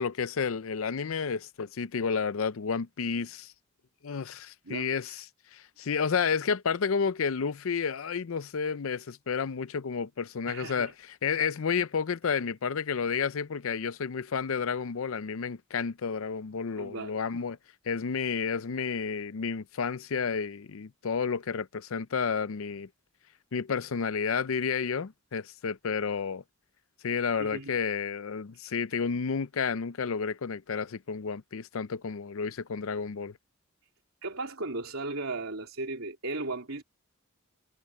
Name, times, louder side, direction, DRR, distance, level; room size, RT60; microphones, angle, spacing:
voice 1, 0.0-3.5 4.0-5.3 5.5-17.6 17.9-22.9 23.5-26.4 27.0-33.3, left 6 dB, 75° left, 0.5 m, -31 dB
voice 2, 4.6-5.2 10.5-10.9 16.8-17.1 27.4-27.7 28.6-28.7 34.2-36.8, right 2 dB, 80° right, 3.5 m, -36 dB
head